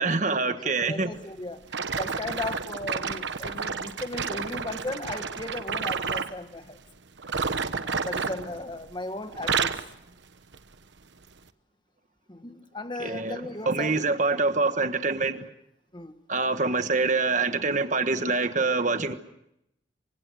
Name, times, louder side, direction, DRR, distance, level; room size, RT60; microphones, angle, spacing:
voice 1, 0.0-1.1 13.0-15.4 16.3-19.1, right 3 dB, 40° right, 1.4 m, -25 dB
voice 2, 0.8-1.7 2.0-6.8 7.4-7.5 7.8-9.8 12.3-14.0 15.9-16.2, left 2 dB, 25° left, 1.6 m, -36 dB
sound 1, 1.7-6.4 7.2-9.0 9.3-9.9 10.5-10.7 11.4-11.5, right 5 dB, 70° right, 1.1 m, -30 dB
28.0 x 24.5 x 6.3 m
head